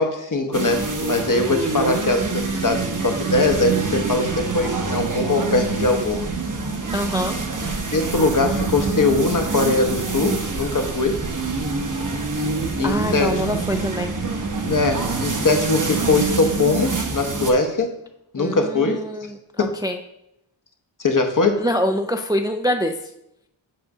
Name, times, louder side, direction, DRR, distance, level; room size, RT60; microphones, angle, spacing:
voice 1, 0.0-6.3 7.9-11.2 12.8-13.5 14.7-17.9 18.3-19.0 21.0-21.6, left 3 dB, 40° left, 5 dB, 0.9 m, -21 dB
sound 1, 0.5-17.5, right 4 dB, 40° right, 0.9 m, -26 dB
voice 2, 6.9-7.4 12.8-14.2 18.4-20.0 21.6-23.0, equal, 10° right, 5 dB, 0.4 m, -25 dB
7.7 x 2.6 x 5.9 m, 0.81 s
wide cardioid pair, 50°, 46 cm